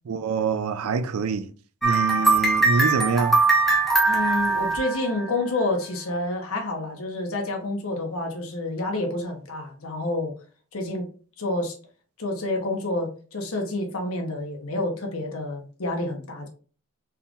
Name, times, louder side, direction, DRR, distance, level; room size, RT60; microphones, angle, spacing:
voice 1, 0.1-1.5 1.8-3.4, right 5 dB, 75° right, 0.4 m, -25 dB
sound 1, 1.8-5.6, right 3 dB, ahead, 0.8 m, -21 dB
voice 2, 4.1-10.3 10.7-11.1 11.4-11.7 12.2-16.5, left 2 dB, 75° left, 1.1 m, -28 dB
4.4 x 3.6 x 2.4 m
head